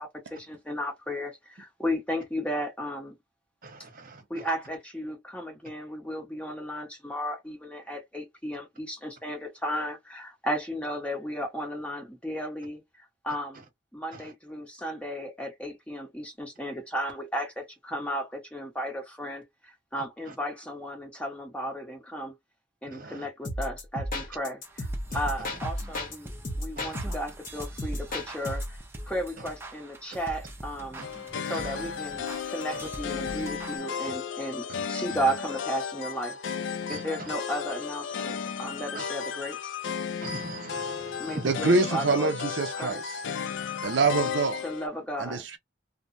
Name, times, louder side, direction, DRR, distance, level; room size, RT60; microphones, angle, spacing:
voice 1, 0.0-3.1 4.3-13.6 13.9-22.3 22.8-24.9 25.1-28.8 29.1-31.1 31.4-36.4 36.9-39.7 41.2-42.5 42.8-43.0 44.6-45.4, equal, 5° left, 0.9 m, -34 dB
voice 2, 3.6-4.2 14.1-14.3 20.3-20.4 22.9-23.3 26.8-27.0 31.0-31.1 31.5-31.9 32.7-32.9 34.7-34.8 36.9-37.3 40.2-41.5, right 3 dB, 45° right, 0.9 m, -41 dB
sound 1, 23.4-26.2 26.4-28.8, left 1 dB, 45° left, 0.9 m, -34 dB
sound 2, 24.6-33.8, right 1 dB, 10° right, 0.5 m, -44 dB
sound 3, 31.0-44.9, left 7 dB, 65° left, 0.4 m, -34 dB
voice 3, 41.4-43.2 43.8-44.6 45.2-45.6, right 3 dB, 65° right, 0.5 m, -25 dB
3.1 x 2.0 x 2.5 m
head